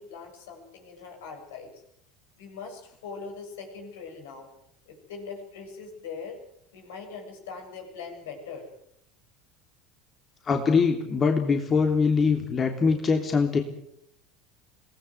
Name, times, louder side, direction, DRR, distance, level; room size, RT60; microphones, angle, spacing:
voice 1, 0.0-1.8 2.4-4.5 4.9-6.4 6.7-8.7, left 5 dB, 70° left, 3 dB, 7.6 m, -41 dB
voice 2, 10.4-13.6, left 5 dB, 30° left, 4 dB, 3.1 m, -23 dB
25.0 x 19.0 x 8.0 m, 0.73 s
hypercardioid pair, 70°, 0 cm